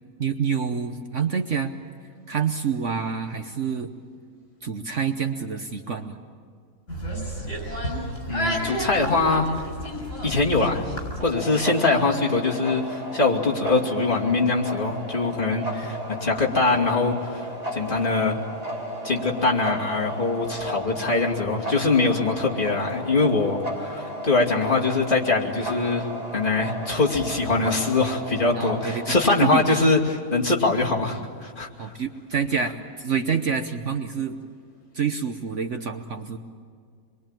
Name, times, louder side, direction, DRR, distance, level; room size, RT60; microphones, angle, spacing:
voice 1, 0.2-1.7 2.3-3.9 4.6-6.2 15.5-16.1 28.5-29.1 29.4-29.6 31.8-32.8 33.0-34.4 34.9-36.4, right 6 dB, 55° right, 6 dB, 1.2 m, -27 dB
sound 1, 6.9-11.2, equal, 50° left, 6.3 m, -31 dB
voice 2, 8.3-9.6 10.2-10.9 11.2-17.4 17.7-18.4 19.0-26.1 26.3-31.9, left 3 dB, 30° left, -2 dB, 2.7 m, -23 dB
sound 2, 11.3-29.7, right 1 dB, 25° right, 2.5 m, -34 dB
26.5 x 22.5 x 9.0 m, 2.1 s
omnidirectional pair, 1.6 m